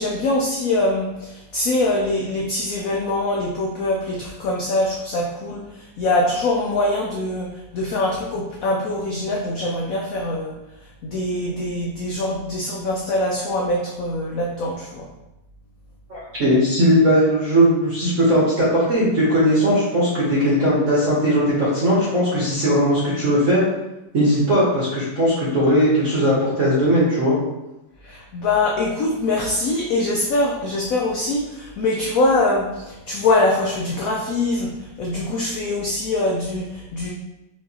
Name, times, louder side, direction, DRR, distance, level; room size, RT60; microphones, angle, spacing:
voice 1, 0.0-10.6 11.0-15.1 28.0-37.1, left 2 dB, 75° left, -1 dB, 0.7 m, -23 dB
voice 2, 16.1-23.6 24.1-27.4, equal, 50° right, -7 dB, 1.2 m, -18 dB
4.5 x 2.8 x 2.8 m, 0.97 s
omnidirectional pair, 2.0 m